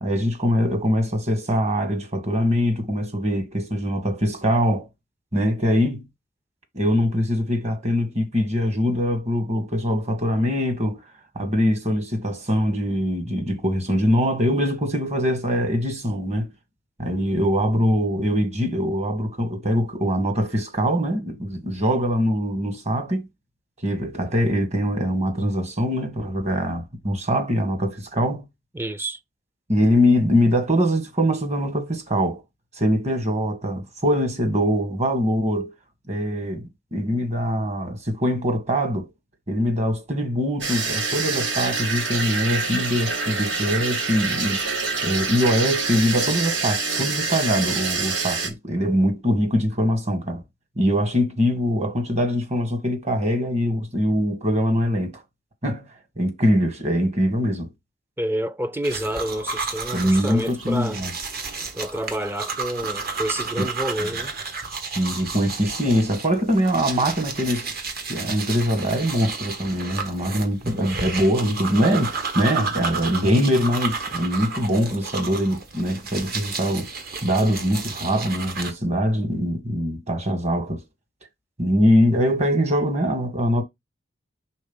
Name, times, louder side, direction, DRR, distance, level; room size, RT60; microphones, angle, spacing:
voice 1, 0.0-4.9 5.3-6.0 6.7-11.0 11.3-16.5 17.0-23.3 23.8-28.4 29.7-32.4 32.8-35.7 36.1-39.1 39.5-44.6 45.0-50.4 50.8-55.2 55.6-55.9 56.2-57.7 59.9-61.1 63.6-63.7 64.9-67.7 68.1-76.9 77.2-80.8 81.6-83.6, equal, 40° right, 1.7 m, -23 dB
voice 2, 28.7-29.2 58.2-61.0 61.7-64.3, right 1 dB, 10° right, 0.5 m, -28 dB
sound 1, 40.6-48.5, right 4 dB, 75° right, 1.8 m, -26 dB
sound 2, 58.8-78.7, right 4 dB, 55° right, 1.4 m, -32 dB
5.4 x 3.6 x 5.5 m
head